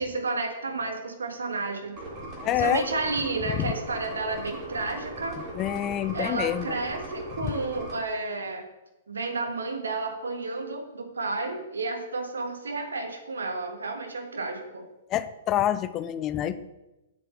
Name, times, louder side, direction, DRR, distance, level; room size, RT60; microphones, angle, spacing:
voice 1, 0.0-1.9 2.6-5.5 6.1-8.6 9.1-14.8, right 3 dB, 75° right, 4 dB, 1.4 m, -31 dB
sound 1, 2.0-8.0, right 1 dB, 25° right, 2.3 m, -39 dB
voice 2, 2.4-2.8 5.6-6.7 7.4-7.5 15.1-16.6, left 11 dB, 30° left, 13 dB, 0.4 m, -27 dB
7.5 x 7.4 x 3.8 m, 0.99 s
figure-of-eight pair, 115°, 0 cm